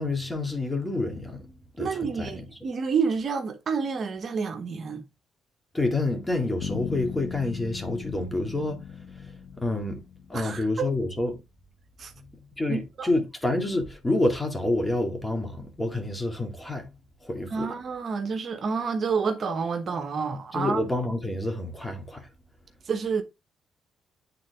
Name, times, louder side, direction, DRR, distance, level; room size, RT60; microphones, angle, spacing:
voice 1, 0.0-1.9 2.2-2.4 5.7-10.0 10.3-11.4 12.2-12.3 12.6-17.0 17.2-17.7 20.5-22.3, left 2 dB, 15° left, 2.0 m, -28 dB
voice 2, 1.8-5.0 10.3-10.9 12.0-12.1 12.7-13.1 17.5-20.8 22.8-23.2, right 5 dB, 50° right, 1.1 m, -29 dB
Bass guitar, 6.6-10.6, left 8 dB, 65° left, 0.4 m, -38 dB
9.1 x 3.8 x 3.3 m
cardioid pair, 90°, 0 cm